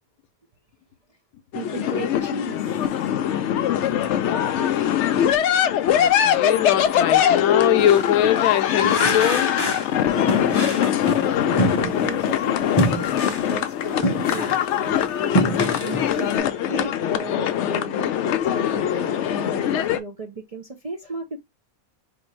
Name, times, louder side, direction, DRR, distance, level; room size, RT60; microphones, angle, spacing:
sound 1, 1.5-20.0, left 10 dB, 65° left, 0.8 m, -22 dB
voice 1, 1.5-3.6 10.1-10.6 11.1-21.4, right 3 dB, 40° right, 0.5 m, -36 dB
voice 2, 5.9-9.5, left 11 dB, 90° left, 1.0 m, -22 dB
sound 2, 7.8-8.1 8.8-9.9 10.3-12.3 12.8-14.7 15.1-16.4, equal, 25° left, 0.5 m, -26 dB
4.5 x 2.5 x 3.0 m
omnidirectional pair, 1.5 m